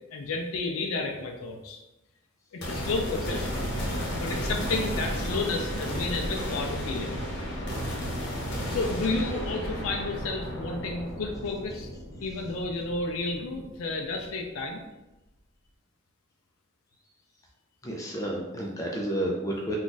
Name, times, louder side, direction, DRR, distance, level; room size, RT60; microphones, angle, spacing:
voice 1, 0.1-1.8 2.5-3.5 4.1-7.2 8.7-11.9 12.2-14.8, left 3 dB, 90° left, 2 dB, 0.4 m, -31 dB
sound 1, 2.6-14.0, equal, 55° left, 0.8 m, -33 dB
voice 2, 17.8-19.8, right 1 dB, 15° left, -1 dB, 0.3 m, -31 dB
2.5 x 2.3 x 3.8 m, 0.99 s
head